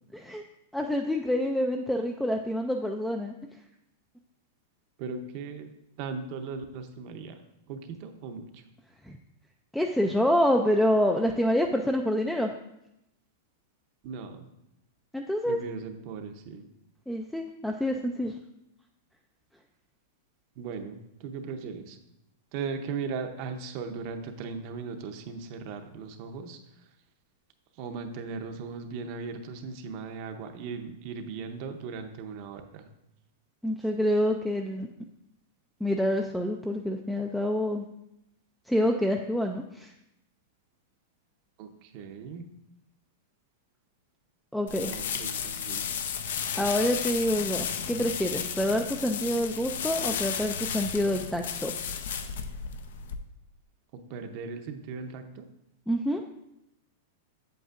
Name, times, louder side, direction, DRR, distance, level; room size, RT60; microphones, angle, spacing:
voice 1, 0.1-0.4 0.7-3.3 9.0-9.2 9.7-12.5 15.1-15.6 17.1-18.4 33.6-34.9 35.8-37.9 38.7-39.9 44.5-44.9 46.6-51.7 55.9-56.2, equal, ahead, 3 dB, 0.3 m, -27 dB
voice 2, 5.0-5.7 6.0-7.3 7.7-8.6 14.0-14.5 15.5-16.6 20.6-22.0 22.5-26.6 27.8-32.9 41.6-42.5 44.8-45.9 54.1-55.5, right 5 dB, 40° right, 7 dB, 0.7 m, -38 dB
sound 1, 44.7-53.1, left 7 dB, 75° left, 0.6 m, -33 dB
7.9 x 7.7 x 2.5 m, 0.84 s
supercardioid pair, 160°, 0 cm